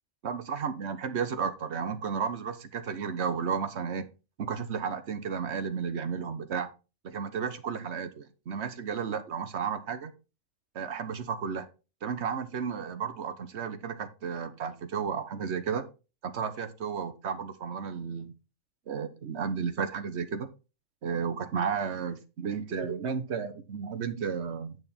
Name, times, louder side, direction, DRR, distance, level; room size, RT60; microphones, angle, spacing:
voice 1, 0.2-4.1 4.4-6.7 7.0-10.1 10.7-11.7 12.0-15.8 16.2-18.3 18.9-20.5 21.0-24.8, right 6 dB, 55° right, 10 dB, 1.2 m, -33 dB
8.8 x 6.4 x 4.3 m, 0.31 s
omnidirectional pair, 1.5 m